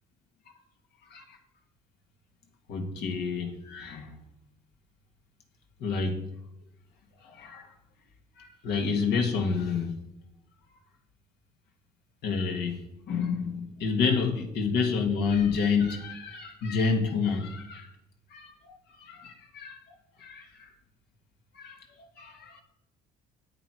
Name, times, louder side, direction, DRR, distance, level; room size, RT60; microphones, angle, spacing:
voice 1, 2.7-4.1 5.8-6.3 7.2-7.7 8.4-9.9 12.2-12.8 13.1-17.9 18.3-19.8 20.2-20.7 21.5-22.6, left 5 dB, 75° left, 2.0 m, -29 dB
9.3 x 9.0 x 4.8 m
cardioid pair, 110°, 17 cm